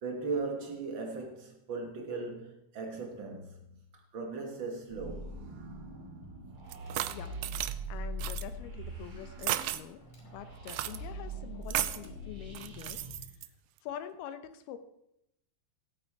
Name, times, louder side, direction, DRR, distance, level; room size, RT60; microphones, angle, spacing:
voice 1, 0.0-5.4, right 4 dB, 70° right, 1.1 m, -38 dB
sound 1, 4.9-13.2, right 1 dB, 45° right, 3.0 m, -42 dB
Tap, 6.5-12.8, left 2 dB, 65° left, 4.2 m, -57 dB
sound 2, 6.7-7.7 8.2-8.4 9.4-9.8 10.7-11.0 11.7-12.1 12.5-13.5, right 15 dB, 90° right, 1.9 m, -34 dB
voice 2, 7.9-13.4 13.8-14.8, left 10 dB, 80° left, 2.9 m, -45 dB
16.5 x 8.7 x 4.7 m
omnidirectional pair, 4.4 m